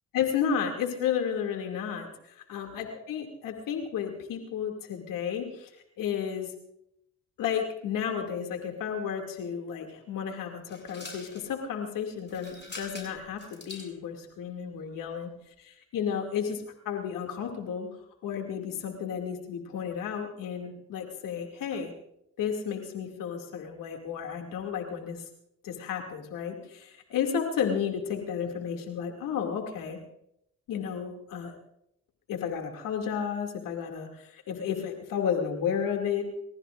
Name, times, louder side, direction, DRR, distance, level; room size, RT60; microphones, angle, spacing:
voice 1, 0.1-5.7 6.0-6.5 7.4-15.3 15.6-17.9 18.2-21.9 22.4-25.2 25.6-30.0 30.7-31.5 32.3-36.3, left 7 dB, 85° left, 3 dB, 2.6 m, -32 dB
sound 1, 10.7-11.5 12.2-13.9, left 3 dB, 35° left, 7.5 m, -44 dB
29.5 x 15.0 x 2.6 m, 0.78 s
supercardioid pair, 50°, 32 cm